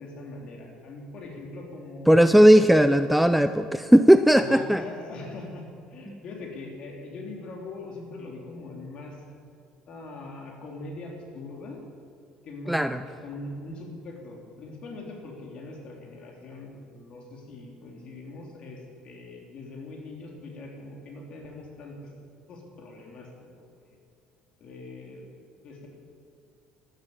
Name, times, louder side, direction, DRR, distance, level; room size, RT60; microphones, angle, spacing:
voice 1, 0.0-2.9 4.4-9.2 9.9-11.8 12.4-22.1 22.5-24.0 24.6-25.3 25.6-25.9, left 2 dB, 45° left, 0 dB, 3.6 m, -41 dB
voice 2, 2.1-4.8 6.1-6.2 12.7-13.0, equal, ahead, 10 dB, 0.4 m, -17 dB
13.0 x 12.0 x 8.1 m, 2.4 s
cardioid pair, 130°, 2 cm